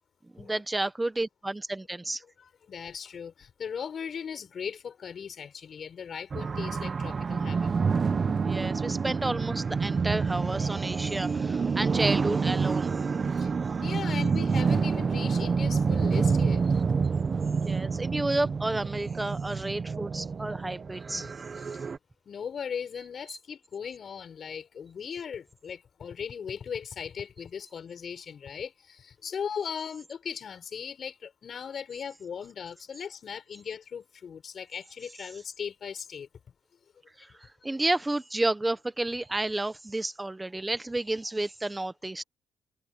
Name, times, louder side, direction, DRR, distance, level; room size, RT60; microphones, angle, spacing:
voice 1, 0.3-2.2 8.4-13.1 17.6-21.3 23.3-23.4 37.2-42.2, right 2 dB, 15° right, 1.0 m, -31 dB
voice 2, 2.7-7.8 8.5-8.6 13.3-13.5 13.8-16.6 21.6-21.8 22.3-36.3, left 7 dB, 50° left, 6.3 m, -38 dB
sound 1, 6.3-22.0, right 5 dB, 40° right, 1.1 m, -28 dB
cardioid pair, 90°, 0 cm